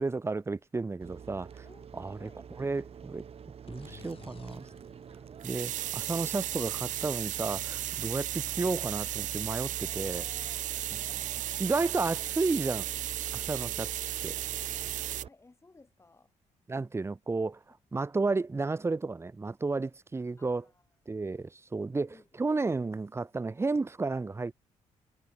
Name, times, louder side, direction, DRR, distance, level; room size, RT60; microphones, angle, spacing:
voice 1, 0.0-1.6 1.9-2.3 2.6-3.2 3.7-4.7 5.4-10.2 11.6-12.9 13.3-13.9 14.2-14.3 16.7-17.6 17.9-20.6 21.1-24.5, right 3 dB, 20° right, 0.8 m, -32 dB
sound 1, 1.0-15.3, right 7 dB, 50° right, 2.1 m, -46 dB
voice 2, 1.6-2.5 8.4-8.5 9.8-11.5 15.2-16.3 20.4-20.9 22.1-22.3, left 3 dB, 20° left, 7.9 m, -58 dB
sound 2, 3.7-7.4, left 6 dB, 45° left, 7.0 m, -55 dB
sound 3, 5.4-15.2, right 13 dB, 85° right, 1.0 m, -35 dB
cardioid pair, 95°, 13 cm